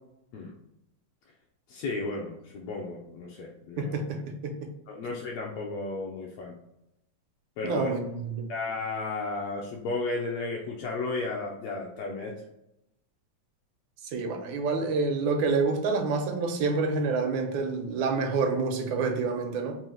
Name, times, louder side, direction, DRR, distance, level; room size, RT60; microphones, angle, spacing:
voice 1, 1.7-4.0 4.9-6.6 7.6-7.9 8.5-12.4, left 3 dB, 80° left, -1 dB, 1.6 m, -33 dB
voice 2, 3.8-4.5 7.6-8.5 14.1-19.8, right 4 dB, 85° right, 4 dB, 2.0 m, -28 dB
5.4 x 2.0 x 3.1 m, 0.85 s
omnidirectional pair, 3.4 m